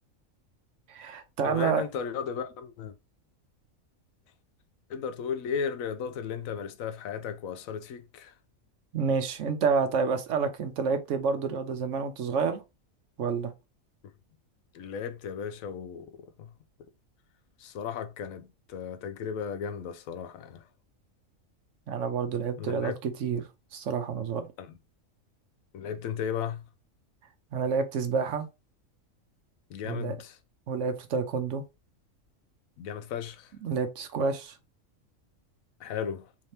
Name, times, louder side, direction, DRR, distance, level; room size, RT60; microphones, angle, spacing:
voice 1, 0.9-1.8 8.9-12.6 13.2-13.5 21.9-24.5 27.5-28.5 29.9-30.2 30.7-31.6 33.6-34.5, right 5 dB, 70° right, 1.0 m, -29 dB
voice 2, 1.4-2.9 4.9-8.3 14.0-14.1 14.7-16.5 17.6-20.6 22.6-22.9 24.6-24.7 25.7-26.6 29.7-30.4 32.8-33.5 35.8-36.3, left 7 dB, 80° left, 1.0 m, -35 dB
3.5 x 2.8 x 3.2 m
omnidirectional pair, 1.4 m